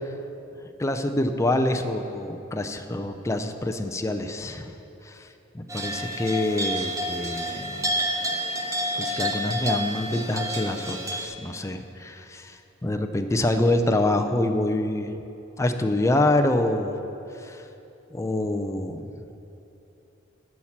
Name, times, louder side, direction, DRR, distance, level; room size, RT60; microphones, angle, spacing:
voice 1, 0.8-4.7 5.0-5.3 5.5-7.9 9.0-15.1 15.6-17.0 17.4-17.7 18.1-19.1, left 1 dB, 15° left, 6 dB, 0.4 m, -26 dB
sound 1, 5.7-11.3, equal, 15° right, 0.8 m, -29 dB
11.0 x 5.8 x 7.2 m, 2.9 s
head